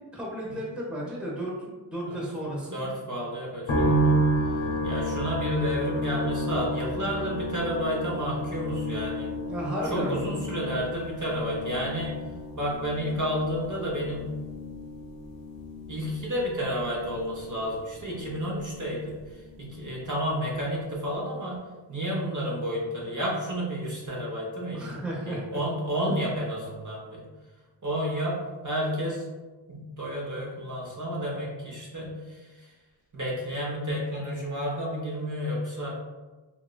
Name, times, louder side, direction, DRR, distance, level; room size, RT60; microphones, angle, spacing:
voice 1, 0.1-1.5 1.9-2.8 9.5-10.2 24.7-25.6, right 1 dB, ahead, -4 dB, 0.6 m, -33 dB
voice 2, 2.7-4.1 4.8-9.3 9.9-12.1 12.6-14.3 15.9-21.6 21.9-27.2 27.8-29.3 29.7-32.7 33.1-36.0, equal, 40° right, -4 dB, 0.7 m, -31 dB
sound 1, 3.7-18.9 19.2-20.1, right 1 dB, 80° left, 0.8 m, -31 dB
2.9 x 2.2 x 2.2 m, 1.2 s
wide cardioid pair, 70°, 46 cm